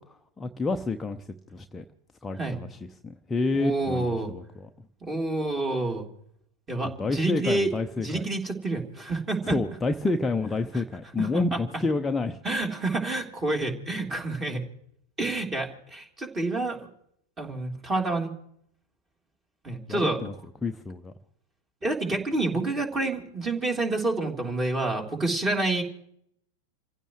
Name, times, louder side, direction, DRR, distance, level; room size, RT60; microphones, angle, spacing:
voice 1, 0.4-1.2 1.5-1.8 2.2-2.7 3.0-4.4 7.0-8.3 9.4-12.4 19.9-20.3 20.6-21.1, left 3 dB, 10° left, 5 dB, 0.8 m, -28 dB
voice 2, 3.5-4.3 5.1-6.0 6.7-9.6 10.7-10.8 11.2-11.6 12.4-14.6 15.2-16.9 17.4-18.3 19.6-20.2 21.8-25.8, right 2 dB, 20° right, 2 dB, 3.5 m, -28 dB
29.0 x 15.5 x 3.2 m, 0.70 s
figure-of-eight pair, 90°, 0 cm